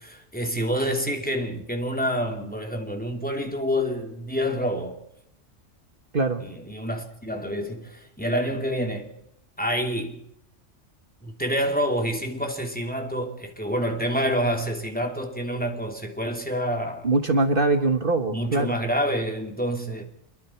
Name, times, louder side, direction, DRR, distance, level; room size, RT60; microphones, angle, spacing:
voice 1, 0.0-5.0 6.4-9.1 9.6-10.2 11.2-17.1 18.3-20.0, equal, 5° left, 3.1 m, -27 dB
voice 2, 17.0-18.8, right 3 dB, 45° right, 1.7 m, -22 dB
29.5 x 22.0 x 4.6 m
omnidirectional pair, 1.2 m